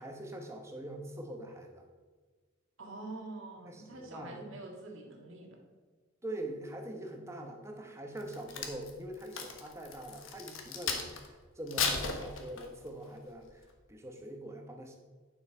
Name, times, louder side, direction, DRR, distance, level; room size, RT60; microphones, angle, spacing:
voice 1, 0.0-1.8 3.7-4.4 6.2-14.9, right 1 dB, 15° right, 3 dB, 1.1 m, -43 dB
voice 2, 2.8-5.6, right 2 dB, 70° right, 0 dB, 1.8 m, -45 dB
Crack, 8.2-11.3 11.7-12.9 13.4-13.6, left 5 dB, 70° left, 1.3 m, -35 dB
9.3 x 7.2 x 4.5 m, 1.4 s
head